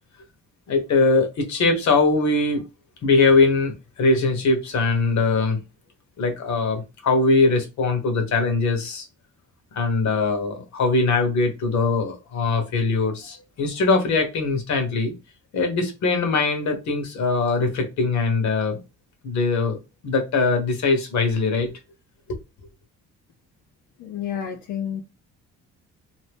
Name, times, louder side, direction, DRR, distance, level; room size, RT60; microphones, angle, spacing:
voice 1, 0.7-2.6 3.0-5.6 6.2-9.0 9.7-15.1 15.5-18.8 19.2-19.8 20.0-21.7, left 3 dB, 70° left, 1.1 m, -21 dB
voice 2, 24.0-25.0, left 9 dB, 90° left, 0.6 m, -30 dB
2.8 x 2.6 x 3.4 m
cardioid pair, 90°, 30 cm